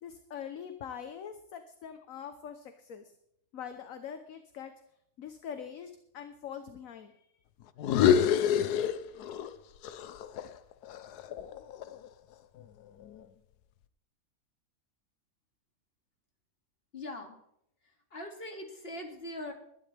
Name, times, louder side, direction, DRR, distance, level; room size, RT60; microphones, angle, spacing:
voice 1, 0.0-3.1 3.5-4.7 5.2-7.2, left 8 dB, 60° left, 8 dB, 1.3 m, -43 dB
sound 1, 7.8-9.5 9.8-12.1, left 9 dB, 85° left, 1.3 m, -27 dB
voice 2, 16.9-17.4 17.8-19.5, left 1 dB, 40° left, 2 dB, 2.6 m, -42 dB
21.0 x 11.0 x 3.4 m, 0.75 s
omnidirectional pair, 1.6 m